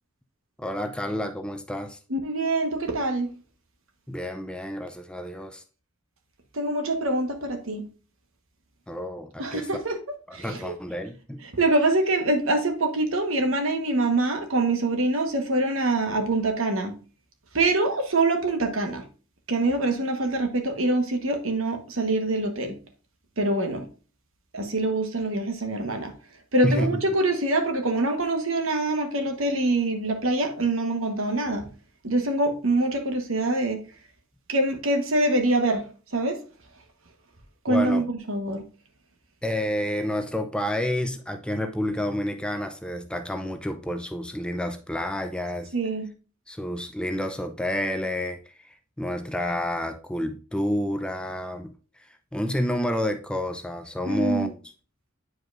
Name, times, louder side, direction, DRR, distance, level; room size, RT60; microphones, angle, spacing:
voice 1, 0.6-2.0 4.1-5.6 8.9-9.7 10.3-11.4 26.6-27.0 37.7-38.0 39.4-45.7 46.5-48.4 48.6-51.7 52.3-54.6, left 1 dB, 5° left, 0.5 m, -29 dB
voice 2, 2.1-3.3 6.5-7.8 9.4-10.0 10.3-10.7 11.4-17.0 17.5-19.0 19.5-22.8 23.4-23.9 24.5-26.1 26.5-31.7 32.0-33.8 34.5-35.8 36.1-36.4 37.6-38.6 45.7-46.1 54.1-54.5, right 2 dB, 70° right, 1.3 m, -25 dB
9.1 x 4.9 x 2.5 m
head